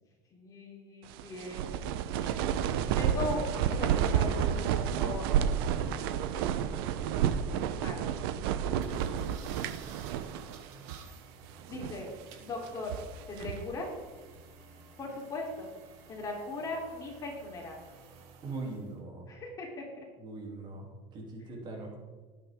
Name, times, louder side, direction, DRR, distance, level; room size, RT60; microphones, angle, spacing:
voice 1, 0.3-1.7 2.2-2.5 3.0-5.2 5.8-6.0 6.3-6.7 7.8-8.1 11.7-12.1 12.4-13.0 13.3-13.9 15.0-15.7 16.1-17.8 19.3-20.0, left 2 dB, 30° left, -1 dB, 3.6 m, -39 dB
sound 1, 1.1-10.6 10.9-11.0 11.6-12.1 12.6-13.7, right 9 dB, 80° right, 0.8 m, -30 dB
sound 2, 8.8-18.9, right 5 dB, 65° right, 2.4 m, -53 dB
voice 2, 18.4-19.3 20.2-22.0, right 3 dB, 40° right, 0 dB, 3.1 m, -41 dB
20.0 x 8.9 x 3.8 m, 1.4 s
cardioid pair, 140°, 12 cm